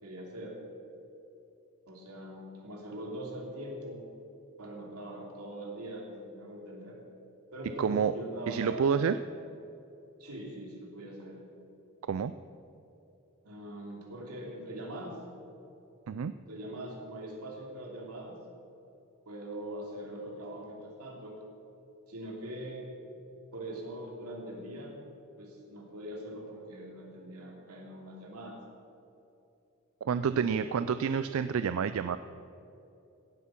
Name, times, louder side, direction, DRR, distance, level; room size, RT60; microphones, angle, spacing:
voice 1, 0.0-0.5 1.9-4.0 4.6-7.0 7.5-9.0 10.2-11.4 13.4-15.1 16.5-18.4 19.2-21.4 22.1-22.9 23.5-25.0 25.4-28.6 30.3-30.7, right 1 dB, 90° right, -1 dB, 2.9 m, -42 dB
voice 2, 7.8-8.2 8.5-9.2 12.1-12.3 16.1-16.3 30.0-32.2, right 6 dB, 70° right, 12 dB, 0.3 m, -28 dB
17.0 x 8.1 x 5.9 m, 2.8 s
head